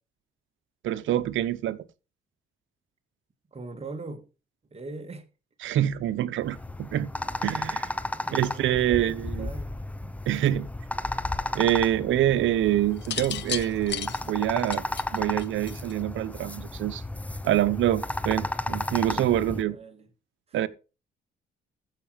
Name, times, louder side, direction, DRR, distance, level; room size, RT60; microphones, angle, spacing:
voice 1, 0.8-1.8 5.6-7.1 7.4-7.9 8.3-9.5 10.3-10.7 11.5-14.8 15.1-17.0 17.4-19.8 20.5-20.7, right 12 dB, 75° right, 0.9 m, -26 dB
voice 2, 3.5-4.2 4.7-5.2 8.1-9.7 10.0-10.1 19.2-20.1 20.5-20.6, right 3 dB, 30° right, 2.5 m, -41 dB
sound 1, 6.4-19.6, left 1 dB, 5° left, 0.7 m, -33 dB
sound 2, 13.0-16.1 17.2-17.6, left 10 dB, 60° left, 0.9 m, -34 dB
14.5 x 6.0 x 5.1 m
cardioid pair, 90°, 20 cm